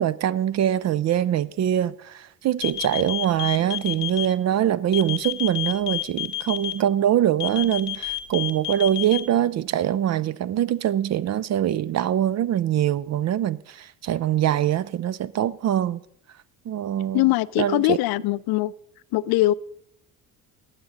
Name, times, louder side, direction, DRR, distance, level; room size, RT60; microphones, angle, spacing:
voice 1, 0.0-16.0 16.7-17.2 17.6-18.0, right 11 dB, 40° right, 0.4 m, -23 dB
sound 1, 2.6-4.3 4.9-6.7 7.4-9.2, left 17 dB, 85° left, 0.9 m, -28 dB
voice 2, 17.1-18.7 19.1-19.5, left 17 dB, 55° left, 0.5 m, -21 dB
15.5 x 9.6 x 3.8 m
hypercardioid pair, 60°, 45 cm